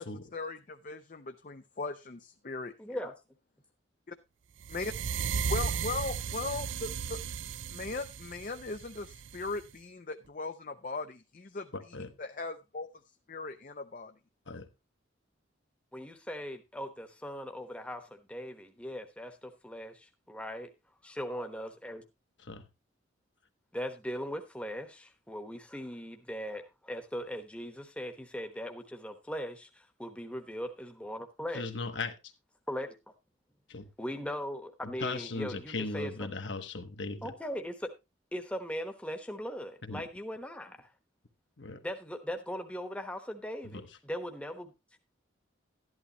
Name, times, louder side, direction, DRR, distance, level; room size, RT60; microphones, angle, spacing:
voice 1, 0.3-3.1 4.1-4.2 4.7-4.9 5.5-7.2 7.7-11.7 12.2-12.9 13.3-14.1, left 3 dB, 40° left, 0.6 m, -38 dB
voice 2, 2.8-3.1 15.9-20.7 21.0-22.0 23.7-31.6 32.7-32.9 34.0-36.3 37.2-37.9 38.3-40.9 41.8-44.7, equal, 5° left, 1.1 m, -39 dB
sound 1, 4.6-9.7, right 6 dB, 75° right, 0.5 m, -35 dB
voice 3, 11.7-12.1 14.5-14.7 22.4-22.6 31.5-32.1 33.7-33.9 35.0-37.3 39.8-40.0 41.6-41.8 43.6-43.8, left 3 dB, 70° left, 1.2 m, -38 dB
12.5 x 11.0 x 2.9 m
head